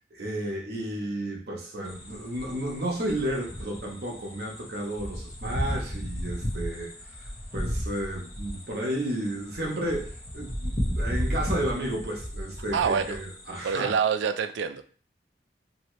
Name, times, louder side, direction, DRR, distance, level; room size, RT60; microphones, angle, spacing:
voice 1, 0.1-13.9, right 1 dB, 55° right, 0.8 m, -32 dB
sound 1, 1.8-13.8, equal, 35° left, 0.8 m, -34 dB
voice 2, 12.7-13.2 13.6-14.8, right 6 dB, 85° right, 0.3 m, -26 dB
2.8 x 2.7 x 3.1 m
head